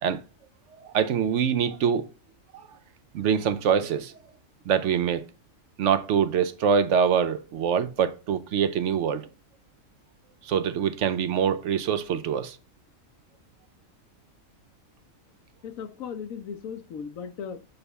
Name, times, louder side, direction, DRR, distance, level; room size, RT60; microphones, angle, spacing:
voice 1, 0.8-2.1 3.1-4.1 4.7-5.2 5.8-9.3 10.4-12.6, right 7 dB, 65° right, 0.9 m, -24 dB
voice 2, 15.6-17.6, left 7 dB, 80° left, 1.2 m, -37 dB
6.9 x 3.4 x 4.1 m
omnidirectional pair, 1.4 m